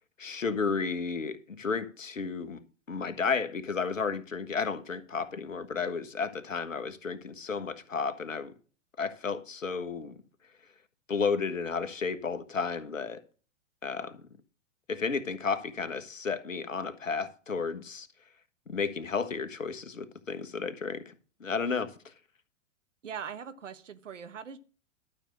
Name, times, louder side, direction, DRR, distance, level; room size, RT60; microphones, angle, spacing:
voice 1, 0.2-2.6 2.9-8.5 9.0-10.2 11.1-13.2 13.8-14.2 14.9-18.1 18.7-21.1 21.4-22.1, left 5 dB, 80° left, 1.5 m, -32 dB
voice 2, 23.0-24.6, right 7 dB, 75° right, 1.5 m, -41 dB
12.5 x 6.8 x 6.4 m
figure-of-eight pair, 105°, 38 cm